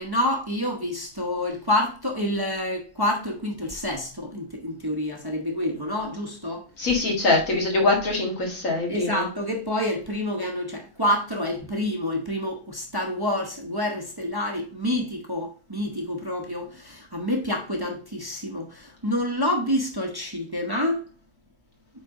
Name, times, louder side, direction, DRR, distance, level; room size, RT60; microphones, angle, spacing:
voice 1, 0.0-6.6 7.8-7.9 8.9-21.0, left 1 dB, 20° right, 0.8 m, -28 dB
voice 2, 6.8-9.3, left 2 dB, 80° left, 2.3 m, -23 dB
8.3 x 3.7 x 3.7 m
omnidirectional pair, 1.4 m